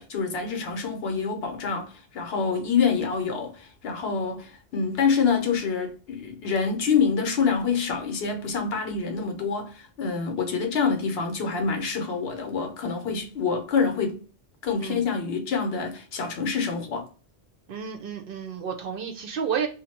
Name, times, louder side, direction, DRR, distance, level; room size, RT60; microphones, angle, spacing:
voice 1, 0.0-14.2 14.6-17.1, left 5 dB, 70° left, 0.9 m, -26 dB
voice 2, 17.7-19.7, right 7 dB, 60° right, 0.7 m, -31 dB
2.6 x 2.1 x 3.9 m
omnidirectional pair, 1.1 m